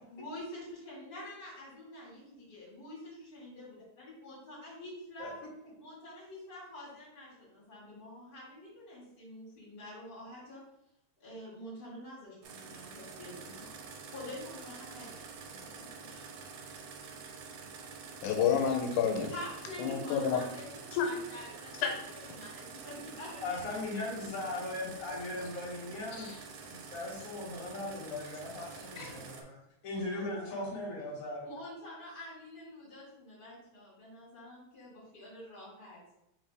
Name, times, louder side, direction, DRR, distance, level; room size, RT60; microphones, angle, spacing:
voice 1, 0.1-5.3 5.8-10.6 11.2-13.7 14.1-16.2 19.3-21.8 22.1-23.6 24.0-24.3 26.1-26.4 29.0-29.2 29.9-30.4 31.4-36.0, left 1 dB, 25° left, -6 dB, 1.4 m, -47 dB
sound 1, 12.4-29.4, right 5 dB, 80° right, 2.0 m, -48 dB
voice 2, 18.2-19.3 19.8-20.4 20.9-21.1 21.8-21.9 26.2-26.3 28.1-28.2 29.0-29.1, left 7 dB, 85° left, 3 dB, 2.2 m, -29 dB
voice 3, 23.4-26.3 26.7-29.6 29.8-31.5, left 2 dB, 60° left, -5 dB, 0.8 m, -38 dB
4.0 x 3.9 x 3.3 m, 0.85 s
omnidirectional pair, 3.5 m